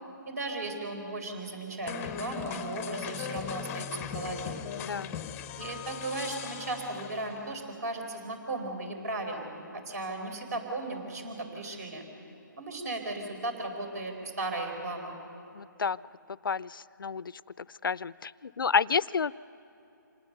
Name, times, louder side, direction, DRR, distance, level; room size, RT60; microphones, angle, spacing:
voice 1, 0.2-4.6 5.6-12.0 12.6-15.1, right 2 dB, 50° right, 5 dB, 4.9 m, -36 dB
sound 1, 1.9-7.5, left 8 dB, 15° left, 0.6 m, -39 dB
voice 2, 4.8-5.1 15.5-16.0 16.3-19.3, left 5 dB, 90° left, 20 dB, 0.4 m, -30 dB
26.5 x 19.0 x 6.8 m, 3.0 s
hypercardioid pair, 155°, 11 cm